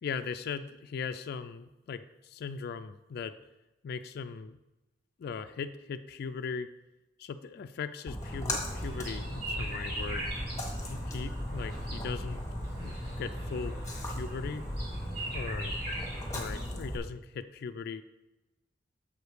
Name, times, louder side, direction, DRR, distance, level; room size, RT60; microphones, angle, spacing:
voice 1, 0.0-3.4 3.8-4.6 5.2-6.7 7.2-10.2 10.9-12.4 12.8-13.8 14.1-14.7 15.3-15.8 16.1-18.0, left 5 dB, 55° left, 10 dB, 0.3 m, -39 dB
Splash splatter, 8.1-17.0, equal, 15° left, 1.3 m, -37 dB
sound 1, 8.2-16.7, right 1 dB, 60° right, 2.5 m, -42 dB
7.1 x 4.9 x 4.8 m, 1.0 s
head